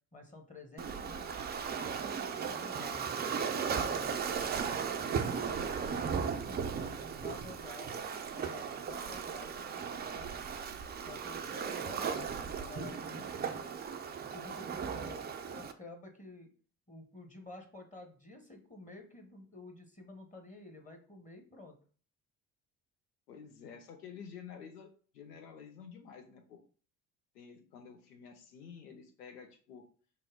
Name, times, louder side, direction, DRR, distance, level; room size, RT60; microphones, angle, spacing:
voice 1, 0.1-1.3 1.8-4.4 5.0-8.0 8.3-10.5 11.1-13.8 14.3-16.5 16.9-21.8, left 2 dB, 15° left, 4 dB, 1.0 m, -51 dB
Waves surf, 0.8-15.7, right 6 dB, 20° right, 0.4 m, -36 dB
voice 2, 23.3-26.6 27.3-29.8, left 7 dB, 80° left, 6 dB, 0.8 m, -50 dB
5.6 x 2.0 x 3.7 m, 0.41 s
figure-of-eight pair, 45°, 47 cm